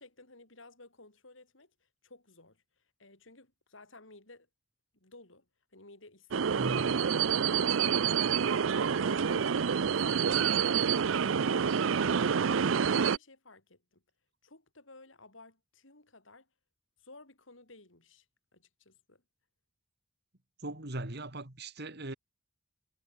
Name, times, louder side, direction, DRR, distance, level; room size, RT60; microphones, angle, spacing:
voice 1, 0.0-4.5 4.9-5.5 5.7-6.7 7.2-7.8 8.1-14.0 14.4-16.5 17.0-18.3 18.5-19.2, left 2 dB, 80° left, 6.1 m, -55 dB
sound 1, 6.3-13.2, right 7 dB, 85° right, 0.5 m, -27 dB
voice 2, 6.6-7.1 20.6-22.1, right 1 dB, 55° right, 3.0 m, -39 dB
head